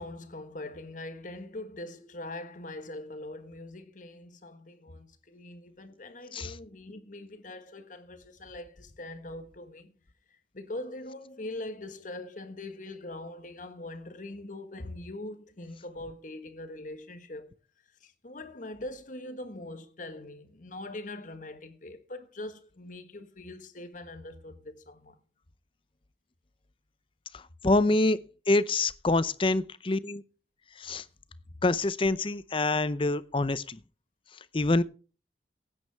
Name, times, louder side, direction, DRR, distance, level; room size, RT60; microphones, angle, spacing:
voice 1, 0.0-9.9 10.3-17.5 18.0-25.2, left 2 dB, 45° left, 1.5 m, -42 dB
voice 2, 27.3-28.2 28.5-30.2 30.8-31.0 31.6-33.8 34.5-34.8, left 2 dB, 30° left, 0.6 m, -26 dB
16.5 x 9.5 x 3.5 m
head